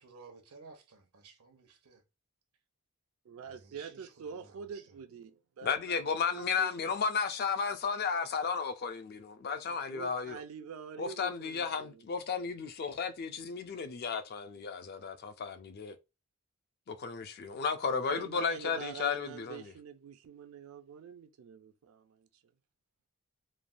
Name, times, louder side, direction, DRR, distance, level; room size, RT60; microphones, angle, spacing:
voice 1, 0.0-2.0 3.4-4.8 12.8-12.9, right 4 dB, 85° right, 0.8 m, -55 dB
voice 2, 3.3-6.9 9.7-12.0 17.9-22.3, right 6 dB, 65° right, 0.3 m, -46 dB
voice 3, 5.6-10.4 11.0-16.0 16.9-19.7, left 5 dB, 45° left, 0.4 m, -34 dB
3.2 x 2.2 x 2.4 m
head